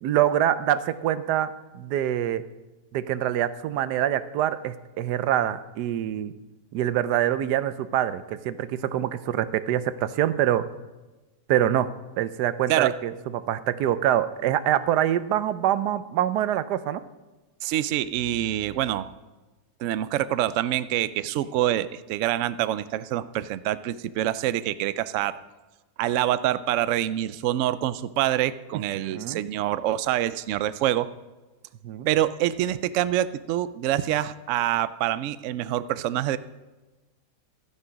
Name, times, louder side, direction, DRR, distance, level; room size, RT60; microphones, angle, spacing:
voice 1, 0.0-2.4 2.9-6.3 6.7-10.7 11.5-17.0 29.0-29.4 31.8-32.1, right 11 dB, 85° right, 14 dB, 1.2 m, -25 dB
voice 2, 17.6-19.1 19.8-25.4 26.0-31.1 32.1-36.4, right 12 dB, 70° right, 14 dB, 0.7 m, -26 dB
13.0 x 9.7 x 5.1 m, 1.2 s
omnidirectional pair, 1.7 m